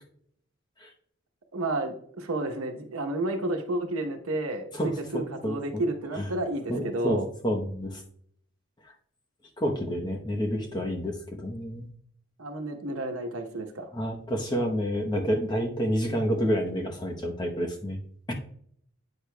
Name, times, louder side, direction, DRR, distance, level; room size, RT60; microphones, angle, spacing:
voice 1, 1.5-7.3 12.4-13.9, right 2 dB, 90° right, 5 dB, 1.0 m, -31 dB
voice 2, 4.7-5.9 6.1-6.3 6.7-7.2 7.4-8.0 9.6-11.9 13.9-18.0 18.3-18.4, equal, 20° left, 2 dB, 0.8 m, -29 dB
8.6 x 6.5 x 2.2 m, 0.64 s
head